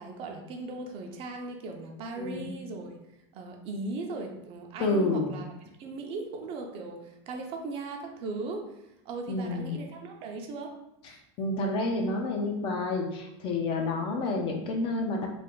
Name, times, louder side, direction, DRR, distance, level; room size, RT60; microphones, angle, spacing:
voice 1, 0.0-2.9 3.3-5.5 5.8-10.7, right 3 dB, 40° right, 2 dB, 0.6 m, -38 dB
voice 2, 2.2-2.5 4.8-5.4 9.3-9.8 11.4-15.3, left 2 dB, 40° left, 2 dB, 0.7 m, -29 dB
3.4 x 2.4 x 3.7 m, 0.84 s
supercardioid pair, 135°, 14 cm